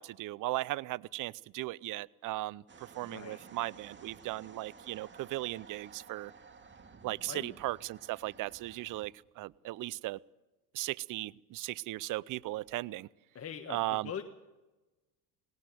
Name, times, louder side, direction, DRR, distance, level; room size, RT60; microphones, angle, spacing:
voice 1, 0.0-6.3 7.0-10.2 10.7-13.1 13.7-14.1, right 18 dB, 45° right, 23 dB, 0.6 m, -37 dB
sound 1, 2.7-9.1, right 5 dB, 25° right, 2.0 m, -55 dB
voice 2, 3.1-3.4 7.3-7.5 13.3-14.2, left 7 dB, 30° left, 6 dB, 1.5 m, -42 dB
19.0 x 18.5 x 7.7 m, 1.1 s
supercardioid pair, 90°, 46 cm